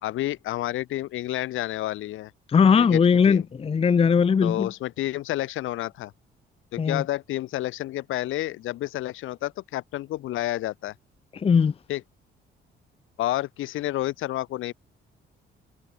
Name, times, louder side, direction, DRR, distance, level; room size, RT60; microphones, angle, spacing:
voice 1, 0.0-2.3 2.8-3.0 3.3-3.4 4.4-6.1 6.7-10.9 11.9-12.0 13.2-14.7, left 15 dB, 90° left, 5.8 m, -30 dB
voice 2, 2.5-4.7 6.8-7.0 11.3-11.7, left 6 dB, 30° left, 0.6 m, -19 dB
cardioid pair, 90°, 20 cm